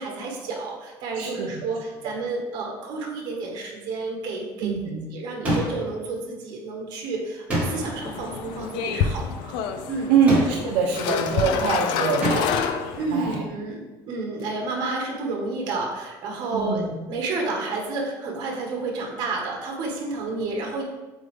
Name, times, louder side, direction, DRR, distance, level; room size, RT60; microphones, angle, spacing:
voice 1, 0.0-9.6 9.9-10.1 13.0-13.8 14.1-16.8 17.1-20.8, right 3 dB, 55° right, 0 dB, 1.4 m, -30 dB
voice 2, 1.2-1.7 4.6-5.0 10.1-12.8 13.1-13.4 16.5-16.9, right 6 dB, 80° right, 0 dB, 0.7 m, -24 dB
sound 1, 5.4-6.0 7.5-8.0 10.3-10.8 12.2-12.7, equal, 15° right, 1.7 m, -26 dB
sound 2, 7.6-13.4, left 7 dB, 65° left, 0.5 m, -28 dB
7.9 x 3.6 x 3.4 m, 1.2 s
cardioid pair, 180°, 9 cm